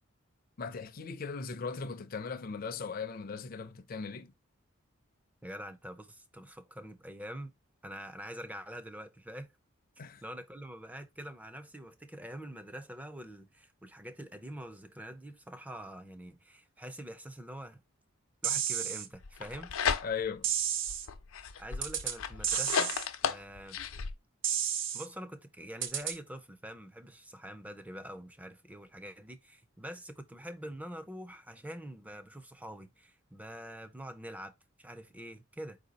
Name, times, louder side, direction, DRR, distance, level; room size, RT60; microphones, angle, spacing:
voice 1, 0.6-4.3 10.0-10.2 20.0-20.5, left 5 dB, 45° left, 0.5 m, -38 dB
voice 2, 5.4-7.5 7.8-9.5 10.2-17.8 18.4-19.7 21.6-22.9 23.2-23.8 24.9-34.5 34.8-35.8, equal, 5° right, 0.4 m, -45 dB
sound 1, 18.4-19.1 20.4-21.1 21.8-22.2 22.4-23.1 24.4-25.1 25.8-26.2, right 9 dB, 60° right, 0.7 m, -32 dB
sound 2, 19.2-20.4 20.9-24.1, left 6 dB, 90° left, 0.6 m, -34 dB
4.6 x 2.7 x 3.9 m
head